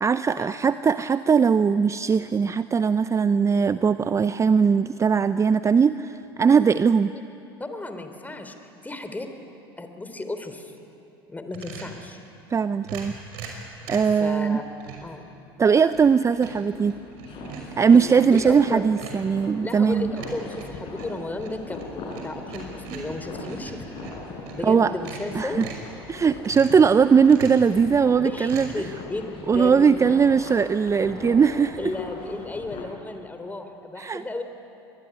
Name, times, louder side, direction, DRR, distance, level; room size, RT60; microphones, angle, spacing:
voice 1, 0.0-7.1 12.5-13.1 13.9-14.6 15.6-16.9 17.8-20.2 24.6-24.9 25.3-25.7 26.1-28.7 29.5-31.8 34.0-34.2, right 6 dB, 25° right, 13 dB, 0.6 m, -20 dB
voice 2, 7.6-9.3 9.8-10.7 11.3-12.2 14.2-14.6 15.0-15.2 17.9-18.8 19.6-24.0 24.5-25.6 28.2-30.1 31.8-34.4, left 2 dB, 15° left, 7 dB, 3.5 m, -34 dB
sound 1, 11.5-12.0 12.8-14.2 14.8-15.1 15.6-16.1 16.4-18.6 19.0-19.3 20.2-24.6 24.9-25.9 26.4-26.9 27.2-27.7 28.4-28.7, right 5 dB, 65° right, 5.8 m, -40 dB
sound 2, 16.7-32.8, left 3 dB, 45° left, 7.3 m, -40 dB
26.0 x 21.5 x 9.7 m, 2.8 s
hypercardioid pair, 75°, 13 cm